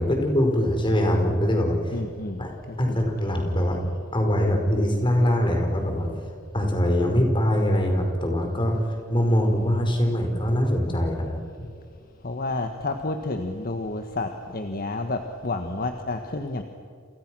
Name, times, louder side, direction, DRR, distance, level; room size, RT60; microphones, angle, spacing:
voice 1, 0.0-2.0 2.4-2.5 2.8-3.8 4.1-6.1 6.5-11.4, equal, 25° left, 3 dB, 4.9 m, -23 dB
voice 2, 1.9-2.5 2.9-3.0 11.6-11.7 12.2-16.6, left 2 dB, 45° left, 5 dB, 1.5 m, -30 dB
29.0 x 28.5 x 6.3 m, 2.2 s
head